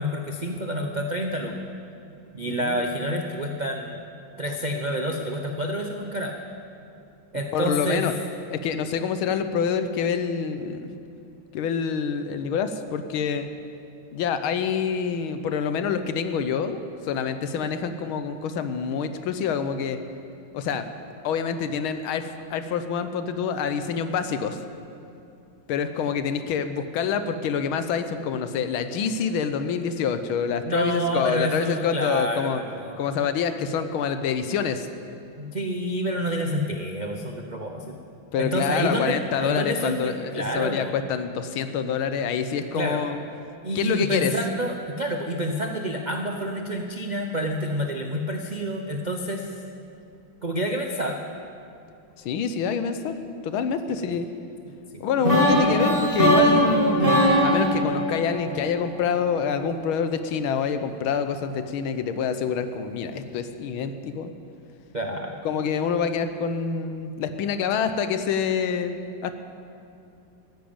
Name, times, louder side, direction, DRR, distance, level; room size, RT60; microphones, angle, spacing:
voice 1, 0.0-1.7 2.3-4.0 4.4-6.4 7.3-8.0 30.7-33.0 35.4-38.0 38.4-40.9 42.7-43.0 43.6-49.5 50.4-51.2 53.9-54.2 54.9-55.7 64.9-65.4, equal, 85° right, 3 dB, 0.4 m, -28 dB
voice 2, 2.5-2.8 7.5-8.1 8.5-10.9 11.5-13.5 14.1-20.0 20.5-20.9 21.2-24.6 25.7-32.6 33.0-34.9 38.3-43.2 43.7-44.3 52.2-53.2 53.4-54.3 55.0-64.3 65.4-69.0 69.2-69.3, left 6 dB, 80° left, 10 dB, 1.7 m, -26 dB
sound 1, 55.2-59.2, equal, 25° right, 3.0 m, -21 dB
14.0 x 10.5 x 8.7 m, 2.6 s
omnidirectional pair, 2.3 m